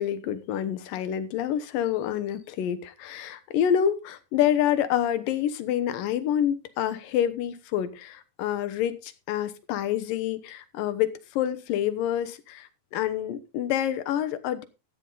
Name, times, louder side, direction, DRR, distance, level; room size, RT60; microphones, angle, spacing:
voice 1, 0.0-14.6, left 10 dB, 75° left, 2.7 m, -27 dB
13.5 x 10.0 x 3.9 m
omnidirectional pair, 4.0 m